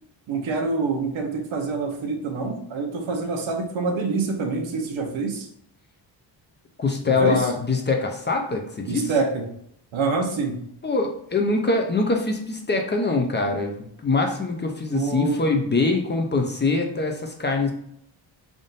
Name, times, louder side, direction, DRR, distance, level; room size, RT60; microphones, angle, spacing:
voice 1, 0.3-5.5 7.1-7.5 8.9-9.5 9.9-10.6 14.9-15.4, right 4 dB, 90° right, 3 dB, 0.9 m, -26 dB
voice 2, 6.8-9.1 10.8-17.7, left 3 dB, 25° left, 2 dB, 0.4 m, -23 dB
3.5 x 2.5 x 3.9 m, 0.71 s
wide cardioid pair, 145°, 45 cm